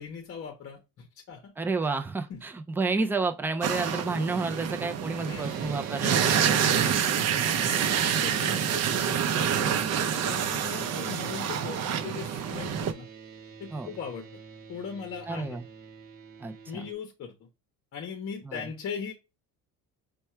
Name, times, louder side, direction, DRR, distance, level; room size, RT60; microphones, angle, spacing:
voice 1, 0.0-1.5 2.3-2.4 5.2-5.6 6.3-13.1 13.6-14.3 14.7-15.6 16.7-17.5 17.9-19.1, left 6 dB, 40° left, 0.8 m, -40 dB
voice 2, 1.6-6.6 13.7-13.9 15.3-15.6 16.4-16.9 18.4-18.6, right 3 dB, 5° right, 0.3 m, -30 dB
sound 1, 3.6-12.9, right 8 dB, 45° right, 0.6 m, -27 dB
sound 2, 5.4-16.9, right 6 dB, 65° right, 1.0 m, -45 dB
4.6 x 2.3 x 4.3 m
cardioid pair, 130°, 36 cm